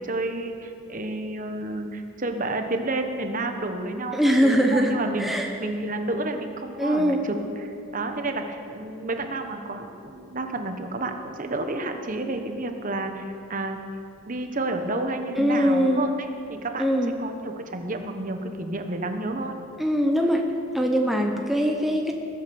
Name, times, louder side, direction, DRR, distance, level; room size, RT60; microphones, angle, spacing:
voice 1, 0.0-5.3 5.6-13.8 14.3-19.6 21.2-21.4, right 2 dB, 40° right, 6 dB, 1.1 m, -30 dB
voice 2, 4.1-5.5 6.8-7.2 15.4-16.0 16.8-17.1 19.8-20.4 20.7-22.1, equal, ahead, 2 dB, 0.8 m, -22 dB
20.0 x 8.6 x 7.0 m, 2.6 s
head